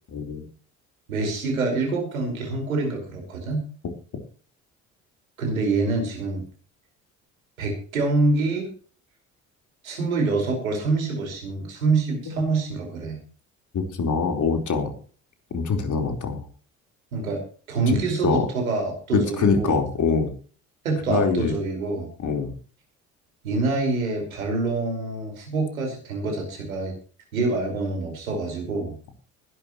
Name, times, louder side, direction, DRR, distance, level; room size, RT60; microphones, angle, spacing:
voice 1, 0.1-0.4 12.3-12.4 13.7-14.9 15.5-16.4 18.2-18.5 19.1-20.3 21.1-21.5 22.2-22.5, left 5 dB, 45° left, 5 dB, 4.2 m, -23 dB
voice 2, 1.1-3.6 5.4-6.4 7.6-8.7 9.8-13.2 17.1-17.4 17.7-19.8 20.8-22.1 23.4-26.9 27.3-29.0, right 3 dB, 85° right, 2 dB, 5.1 m, -26 dB
21.0 x 11.5 x 3.1 m, 0.41 s
hypercardioid pair, 55°, 40 cm